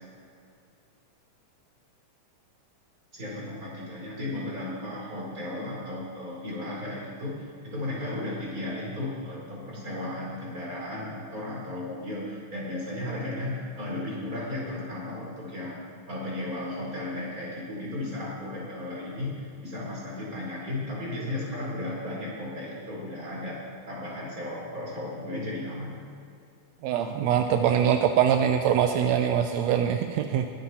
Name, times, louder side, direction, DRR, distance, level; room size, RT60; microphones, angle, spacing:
voice 1, 3.1-15.8 16.1-23.6 23.9-26.0, left 1 dB, 25° right, -5 dB, 4.9 m, -35 dB
voice 2, 26.8-30.5, right 9 dB, 80° right, 6 dB, 1.6 m, -23 dB
22.5 x 10.0 x 4.3 m, 2.5 s
omnidirectional pair, 3.6 m